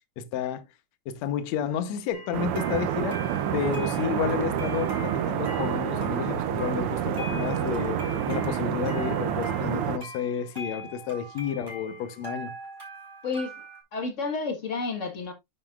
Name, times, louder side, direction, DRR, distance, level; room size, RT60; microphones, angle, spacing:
voice 1, 0.2-0.7 1.1-3.3 3.5-8.0 8.3-12.5, left 8 dB, 70° left, 2.1 m, -31 dB
sound 1, 2.1-13.8, equal, 5° right, 4.0 m, -43 dB
sound 2, 2.3-10.0, right 9 dB, 85° right, 1.2 m, -28 dB
voice 2, 13.9-15.3, left 4 dB, 40° left, 1.2 m, -30 dB
9.7 x 7.1 x 2.4 m
omnidirectional pair, 3.4 m